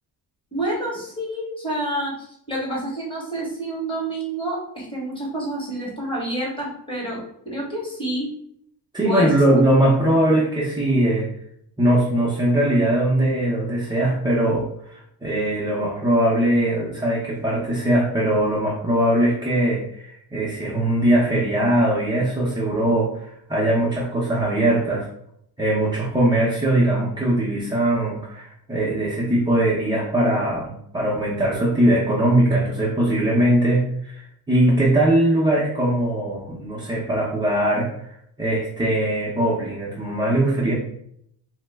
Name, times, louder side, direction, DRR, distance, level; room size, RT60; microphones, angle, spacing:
voice 1, 0.5-8.3 9.0-9.3, right 1 dB, 15° left, -4 dB, 1.0 m, -28 dB
voice 2, 8.9-11.3 11.8-25.1 25.6-38.1 38.4-40.7, right 1 dB, 10° right, -6 dB, 0.5 m, -21 dB
3.0 x 2.1 x 3.2 m, 0.71 s
cardioid pair, 135°, 39 cm